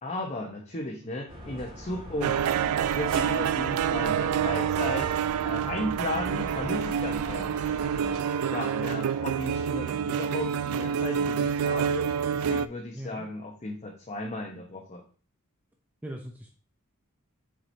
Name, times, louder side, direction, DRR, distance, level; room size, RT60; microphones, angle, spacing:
voice 1, 0.0-2.4 2.9-7.5 8.5-15.0, left 1 dB, 35° left, -1 dB, 0.9 m, -35 dB
sound 1, 1.3-8.2, equal, 25° right, 2.0 m, -42 dB
sound 2, 2.2-12.7, right 8 dB, 80° right, 0.3 m, -27 dB
sound 3, 5.5-12.6, left 1 dB, 85° left, 2.7 m, -48 dB
voice 2, 12.9-13.3 16.0-16.5, equal, 5° right, 2 dB, 0.6 m, -39 dB
7.4 x 4.8 x 2.7 m, 0.41 s
head